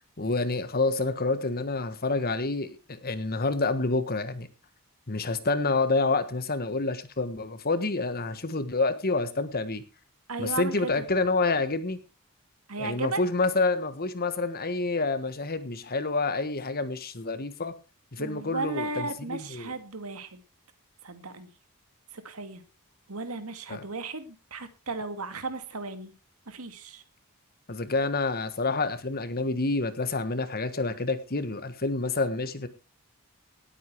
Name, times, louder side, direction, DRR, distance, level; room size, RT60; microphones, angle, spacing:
voice 1, 0.2-4.5 5.1-9.8 10.4-12.0 12.8-17.7 18.1-19.7 23.7-23.8 27.7-32.7, left 3 dB, 45° left, 12 dB, 1.5 m, -28 dB
voice 2, 10.3-11.0 12.7-13.2 18.2-20.4 21.0-21.5 22.1-22.6 23.1-26.1 26.5-27.0, right 3 dB, 75° right, 10 dB, 1.9 m, -35 dB
18.5 x 8.6 x 4.7 m, 0.32 s
head